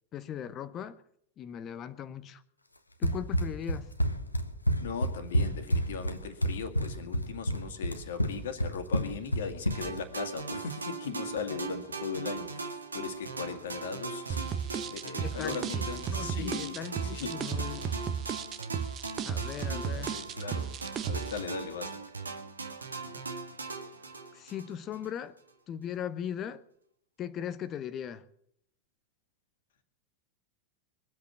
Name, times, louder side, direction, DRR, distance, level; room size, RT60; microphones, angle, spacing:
voice 1, 0.1-1.0 1.4-2.4 3.0-3.9 15.2-17.9 18.8-18.9 19.2-20.3 24.3-25.4 25.7-26.6 27.2-28.3, left 9 dB, 30° left, 0.9 m, -39 dB
Run, 3.0-10.1, equal, 85° left, 1.2 m, -29 dB
voice 2, 4.8-17.7 19.1-19.4 19.7-20.7 21.0-22.0, left 6 dB, 60° left, 2.1 m, -39 dB
sound 1, 9.7-25.1, right 4 dB, 75° right, 1.9 m, -40 dB
sound 2, 14.3-21.4, right 8 dB, 30° right, 1.2 m, -34 dB
22.5 x 8.4 x 7.4 m
figure-of-eight pair, 90°, 0 cm